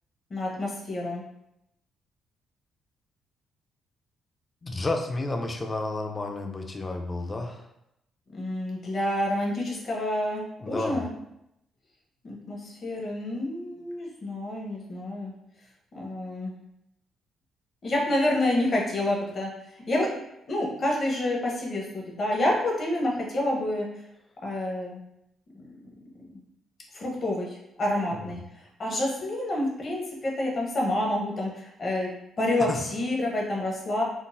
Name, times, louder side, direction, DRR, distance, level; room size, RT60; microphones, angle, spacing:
voice 1, 0.3-1.2 8.3-11.1 12.2-15.3 15.9-16.5 17.8-19.5 19.9-20.1 20.5-23.9 24.4-25.0 25.6-25.7 26.9-27.5 27.8-28.4 28.8-32.1 32.4-34.0, left 1 dB, 45° left, -2 dB, 0.8 m, -28 dB
voice 2, 4.6-7.7 10.6-11.0 28.1-28.3 32.7-32.8, left 2 dB, 25° left, 4 dB, 0.4 m, -31 dB
3.8 x 2.0 x 2.6 m, 0.82 s
cardioid pair, 90°, 0 cm